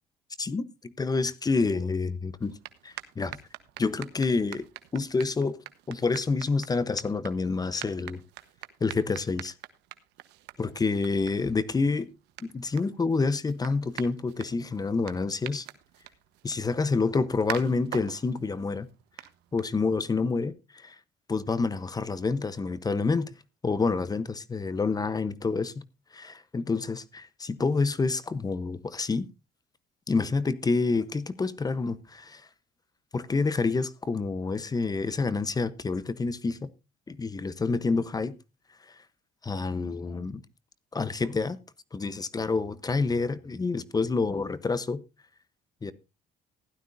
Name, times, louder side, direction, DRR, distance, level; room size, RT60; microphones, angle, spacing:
voice 1, 0.4-2.5 2.8-3.4 3.8-4.7 4.9-5.6 5.9-8.2 8.8-9.5 10.6-12.1 12.4-15.7 16.4-18.9 19.5-21.0 21.3-23.3 23.6-25.8 26.1-29.2 30.1-32.4 33.1-36.7 37.1-38.3 39.4-40.4 40.9-41.6 41.9-45.0 45.8-45.9, left 4 dB, 20° left, 0.9 m, -28 dB
hockey ball dribble, 2.4-20.1, right 16 dB, 90° right, 1.2 m, -46 dB
16.0 x 12.0 x 2.6 m
cardioid pair, 110°, 17 cm